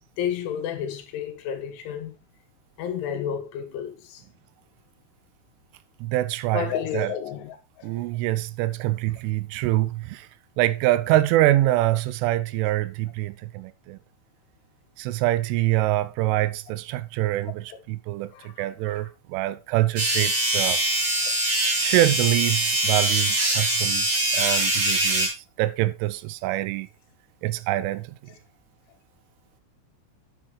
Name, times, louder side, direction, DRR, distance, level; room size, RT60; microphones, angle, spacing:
voice 1, 0.2-2.1 2.8-4.2 6.5-7.9 17.7-17.8 18.3-18.9, left 9 dB, 80° left, 3.7 m, -31 dB
voice 2, 6.0-7.1 7.8-10.3 10.6-14.0 15.0-20.8 21.8-25.3 25.6-26.9 27.4-28.3, right 15 dB, 85° right, 3.1 m, -25 dB
sound 1, 20.0-25.3, right 1 dB, 35° right, 3.1 m, -23 dB
9.1 x 7.6 x 3.2 m
omnidirectional pair, 5.6 m